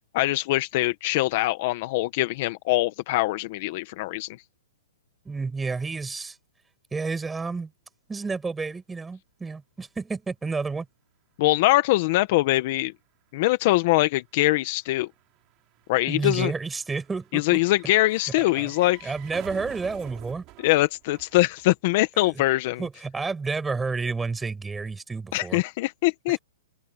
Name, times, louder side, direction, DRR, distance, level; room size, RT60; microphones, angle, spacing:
voice 1, 0.1-4.3 11.4-12.9 13.3-15.1 15.9-16.5 17.3-19.1 20.6-22.8 25.3-26.4, left 18 dB, 40° left, 1.1 m, -23 dB
voice 2, 5.3-6.4 6.9-7.7 8.1-10.9 16.1-17.6 18.5-18.7 19.0-20.4 22.3-22.4 22.8-25.6, right 4 dB, 10° right, 7.5 m, -30 dB
sound 1, 11.4-11.5 11.7-22.1 22.3-22.4, right 21 dB, 30° right, 6.6 m, -49 dB
hypercardioid pair, 155°, 0 cm